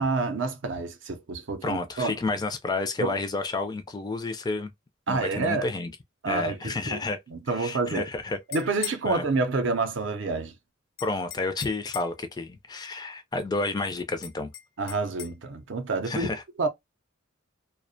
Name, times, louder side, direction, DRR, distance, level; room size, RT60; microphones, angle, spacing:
voice 1, 0.0-2.1 3.0-3.1 5.1-5.7 6.2-7.0 7.3-8.1 8.5-10.5 14.8-16.3 16.6-16.7, right 3 dB, 65° right, 0.5 m, -28 dB
voice 2, 1.6-4.7 5.1-5.9 6.3-7.2 7.5-8.4 9.0-9.3 11.0-14.5 16.1-16.4, left 3 dB, 20° left, 0.3 m, -30 dB
sound 1, 8.3-9.1 11.0-12.2 14.2-15.4, left 10 dB, 75° left, 0.5 m, -39 dB
2.4 x 2.1 x 2.5 m
head